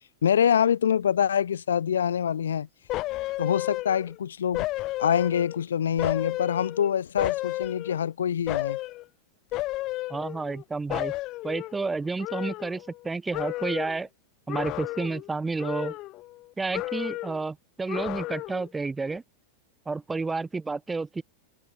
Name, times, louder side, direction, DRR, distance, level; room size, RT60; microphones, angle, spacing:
voice 1, 0.2-2.7 3.4-4.7 5.0-8.8, left 8 dB, 65° left, 0.3 m, -25 dB
sound 1, 2.9-4.2 4.5-5.6 6.0-8.1 8.5-9.0 9.5-10.6 10.9-13.1 13.3-14.0 14.5-15.3 15.6-16.4 16.7-17.4 17.9-18.7 19.1-19.2, left 18 dB, 40° left, 1.0 m, -33 dB
voice 2, 10.1-11.1 11.4-14.1 14.5-16.0 16.6-19.2 19.9-21.2, right 3 dB, 10° right, 0.5 m, -30 dB
figure-of-eight pair, 90°, 0 cm